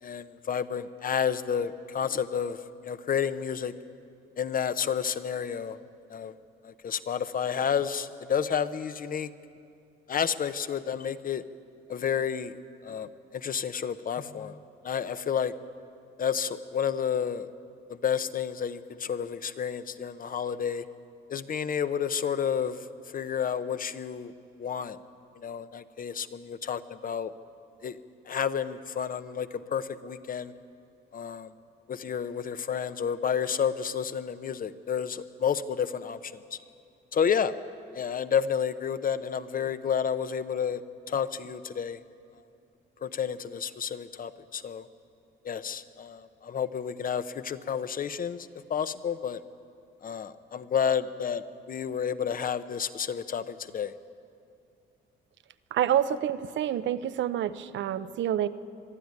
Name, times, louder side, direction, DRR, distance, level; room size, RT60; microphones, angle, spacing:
voice 1, 0.0-3.7 4.4-5.8 6.1-6.3 6.6-9.3 10.1-11.4 11.9-14.6 14.8-15.5 16.2-17.5 17.9-20.8 21.3-22.9 23.1-24.3 24.6-25.0 25.4-27.3 27.8-28.0 28.3-30.5 31.1-31.5 31.9-36.6 37.1-37.5 37.9-40.8 41.1-42.0 43.0-44.9 45.4-49.4 50.0-53.9, left 7 dB, 45° left, 13 dB, 0.9 m, -30 dB
voice 2, 55.7-58.5, right 10 dB, 70° right, 14 dB, 0.8 m, -27 dB
22.5 x 12.5 x 9.6 m, 2.5 s
cardioid pair, 90°, 20 cm